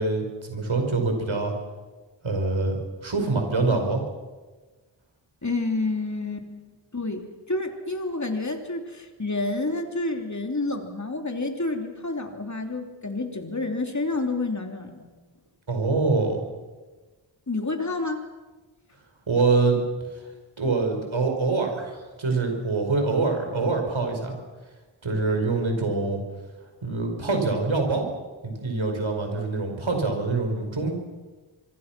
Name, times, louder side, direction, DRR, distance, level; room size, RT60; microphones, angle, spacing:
voice 1, 0.0-1.5 2.2-4.0 15.7-16.4 19.3-19.8 20.6-24.4 25.0-26.2 26.8-28.1 28.4-30.9, right 3 dB, 70° right, 4 dB, 5.2 m, -25 dB
voice 2, 5.4-6.7 6.9-7.2 7.5-15.1 17.5-18.2, left 2 dB, 35° left, 4 dB, 3.1 m, -29 dB
25.5 x 24.0 x 6.0 m, 1.3 s
wide cardioid pair, 65°, 48 cm